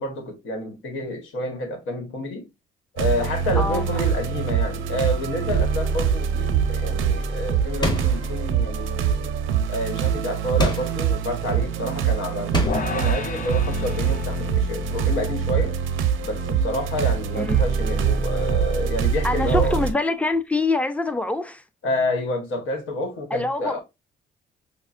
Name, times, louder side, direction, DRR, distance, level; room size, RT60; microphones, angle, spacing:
voice 1, 0.0-2.5 3.0-9.3 9.7-15.8 16.2-19.8 21.8-23.8, left 1 dB, 80° left, 1.2 m, -29 dB
sound 1, 3.0-19.9, right 7 dB, 85° right, 0.6 m, -24 dB
voice 2, 3.6-4.0 17.3-17.6 19.2-21.6 23.3-23.8, left 2 dB, 5° left, 0.5 m, -25 dB
sound 2, 7.8-8.4 10.6-11.1 12.5-13.0, left 1 dB, 20° left, 1.1 m, -26 dB
sound 3, 12.7-19.0, left 3 dB, 40° left, 0.7 m, -35 dB
5.3 x 2.0 x 2.4 m
cardioid pair, 90°, 20 cm